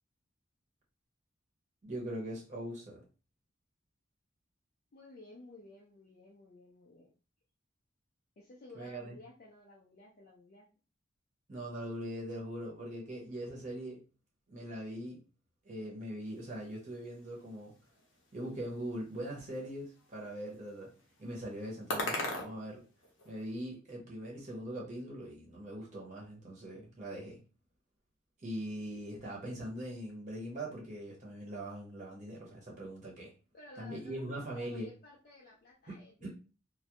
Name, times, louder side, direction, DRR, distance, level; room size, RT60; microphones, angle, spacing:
voice 1, 1.8-3.0 8.7-9.1 11.5-14.0 14.5-15.2 15.6-17.7 18.3-20.9 21.2-22.8 23.2-27.4 28.4-33.3 33.8-34.9 35.9-36.3, right 1 dB, 40° right, -3 dB, 0.7 m, -41 dB
voice 2, 4.9-7.1 8.4-10.7 33.5-36.3, left 2 dB, 50° left, -3 dB, 0.4 m, -54 dB
sound 1, 16.3-23.5, left 1 dB, 85° left, 0.7 m, -43 dB
2.2 x 2.1 x 2.8 m, 0.34 s
head